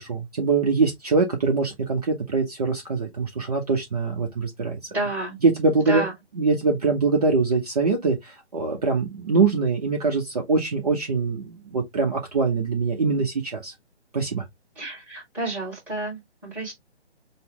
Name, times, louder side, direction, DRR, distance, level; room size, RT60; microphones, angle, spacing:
voice 1, 0.0-4.8 5.4-6.0 6.4-13.7 14.1-14.4, right 4 dB, 35° right, 0.7 m, -23 dB
voice 2, 4.9-5.4 5.8-6.1 14.7-16.7, right 2 dB, 5° right, 1.4 m, -30 dB
5.4 x 2.1 x 3.2 m
figure-of-eight pair, 150°, 34 cm